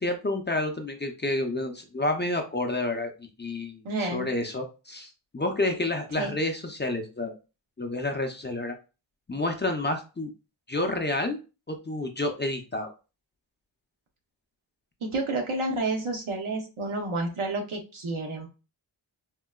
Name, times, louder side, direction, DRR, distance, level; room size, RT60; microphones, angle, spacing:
voice 1, 0.0-7.3 7.8-8.8 9.3-10.3 10.7-11.4 11.7-12.9, left 2 dB, 25° left, 4 dB, 0.4 m, -29 dB
voice 2, 3.8-4.3 6.2-6.3 15.0-18.5, right 2 dB, 90° right, 2 dB, 0.8 m, -30 dB
3.7 x 2.1 x 2.2 m, 0.31 s
wide cardioid pair, 80°, 47 cm